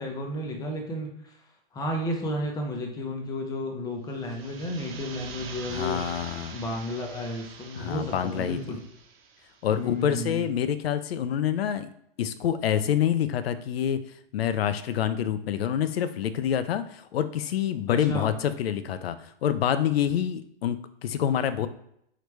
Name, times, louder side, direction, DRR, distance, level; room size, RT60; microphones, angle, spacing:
voice 1, 0.0-1.3 1.7-6.0 6.5-8.8 9.7-10.4 17.9-18.3, left 1 dB, 10° left, 2 dB, 0.7 m, -32 dB
sound 1, 4.1-9.8, right 5 dB, 75° right, 1.3 m, -44 dB
voice 2, 5.7-6.6 7.8-8.6 9.6-11.9 12.2-14.0 14.3-21.7, left 9 dB, 80° left, 12 dB, 0.6 m, -27 dB
4.8 x 3.2 x 3.2 m, 0.74 s
hypercardioid pair, 140°, 30 cm